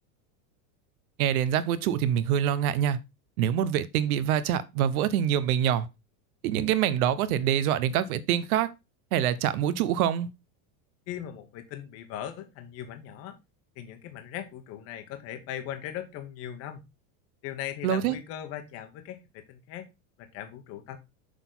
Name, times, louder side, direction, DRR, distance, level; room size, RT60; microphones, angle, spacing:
voice 1, 1.2-3.0 3.4-5.9 6.4-8.7 9.1-10.3 17.8-18.1, right 10 dB, 70° right, 1.0 m, -25 dB
voice 2, 11.1-13.4 13.8-16.8 17.4-19.9 20.2-21.0, left 10 dB, 30° left, 1.1 m, -39 dB
6.5 x 6.1 x 3.9 m
supercardioid pair, 175°, 45 cm